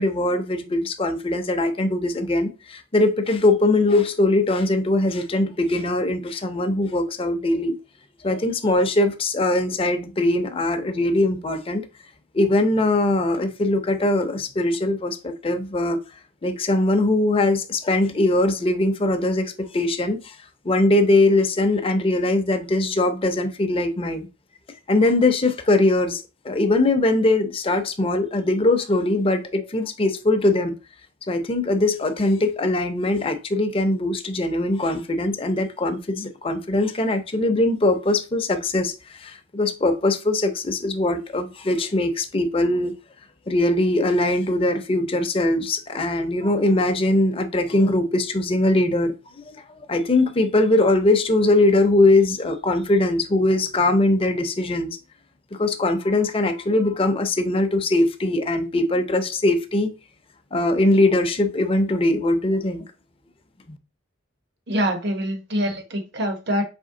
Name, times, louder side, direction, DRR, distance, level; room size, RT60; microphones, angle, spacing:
voice 1, 0.0-7.8 8.2-11.8 12.3-16.0 16.4-20.4 20.6-24.3 24.9-30.8 31.3-42.9 43.5-49.1 49.5-55.0 55.5-59.9 60.5-62.9, left 2 dB, 30° left, 0.6 m, -21 dB
voice 2, 64.7-66.6, equal, 55° right, 1.0 m, -25 dB
4.2 x 3.3 x 3.7 m
head